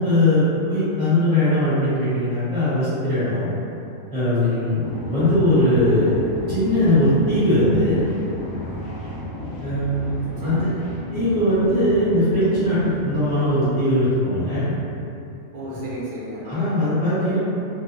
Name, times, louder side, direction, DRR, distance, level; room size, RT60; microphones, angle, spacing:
voice 1, 0.0-3.5 4.1-6.2 6.5-8.0 9.6-10.1 10.4-10.6 11.1-14.7 16.4-17.4, left 1 dB, 5° right, -16 dB, 0.8 m, -20 dB
voice 2, 4.4-4.8 10.4-11.2 15.5-16.7, right 1 dB, 90° right, -7 dB, 1.2 m, -34 dB
sound 1, 4.7-13.7, left 1 dB, 65° left, 0.9 m, -34 dB
2.7 x 2.2 x 2.5 m, 2.7 s
omnidirectional pair, 1.5 m